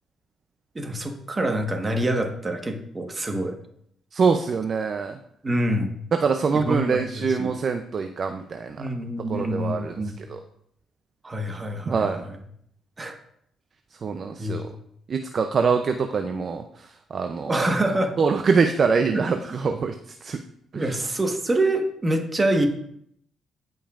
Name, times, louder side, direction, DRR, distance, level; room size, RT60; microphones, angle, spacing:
voice 1, 0.7-3.6 5.4-6.0 6.5-7.5 8.8-10.3 11.2-12.4 13.0-13.2 14.4-14.7 17.5-18.1 19.1-19.3 20.7-22.7, right 1 dB, 25° right, 4 dB, 1.3 m, -26 dB
voice 2, 4.1-5.1 6.1-8.8 9.3-9.9 10.3-10.4 11.9-12.2 14.0-14.6 15.1-16.6 17.1-17.5 18.2-19.9 20.2-20.4 20.7-20.8, right 5 dB, 45° right, 6 dB, 0.5 m, -24 dB
16.0 x 5.4 x 2.5 m, 0.70 s
cardioid pair, 90°, 0 cm